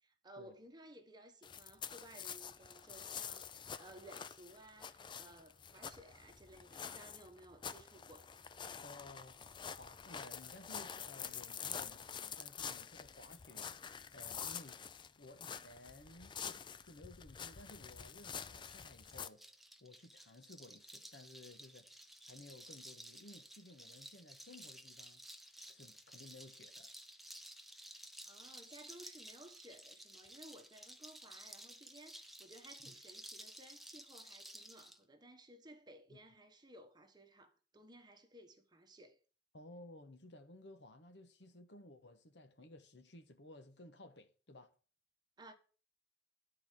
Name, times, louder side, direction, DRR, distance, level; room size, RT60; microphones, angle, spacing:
voice 1, 0.0-8.3 28.3-39.2 45.4-45.5, right 1 dB, 25° right, 1.2 m, -58 dB
sound 1, 1.4-19.3, left 7 dB, 25° left, 0.4 m, -47 dB
voice 2, 8.8-9.4 9.7-13.8 14.1-14.8 15.2-21.9 22.3-25.2 25.7-26.9 32.8-32.9 36.1-36.2 39.5-44.7, left 2 dB, 85° left, 1.3 m, -57 dB
sound 2, 18.6-35.0, right 1 dB, ahead, 0.8 m, -54 dB
11.0 x 4.6 x 7.3 m
head